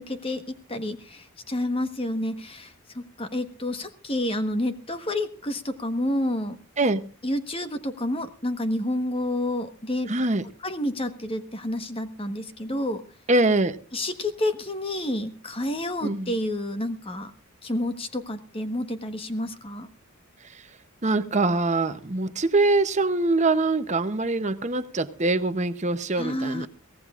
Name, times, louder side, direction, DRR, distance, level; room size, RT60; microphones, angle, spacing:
voice 1, 0.0-6.6 7.2-10.1 10.6-13.0 13.9-17.3 17.6-19.9 26.2-26.7, left 1 dB, 25° left, 8 dB, 1.3 m, -29 dB
voice 2, 10.1-10.4 13.3-13.8 16.0-16.3 21.0-26.7, right 2 dB, 30° right, 10 dB, 0.8 m, -23 dB
23.5 x 17.0 x 2.5 m, 0.37 s
head